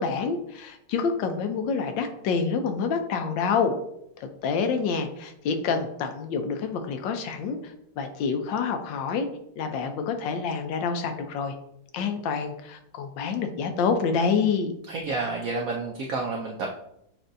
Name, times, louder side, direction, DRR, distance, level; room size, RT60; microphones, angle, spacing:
voice 1, 0.0-3.8 4.2-7.6 8.0-9.3 9.6-11.5 11.9-14.7, left 5 dB, 80° left, 7 dB, 1.3 m, -27 dB
voice 2, 14.9-16.7, right 3 dB, 75° right, 0 dB, 0.7 m, -30 dB
7.5 x 2.6 x 2.5 m, 0.76 s
omnidirectional pair, 2.1 m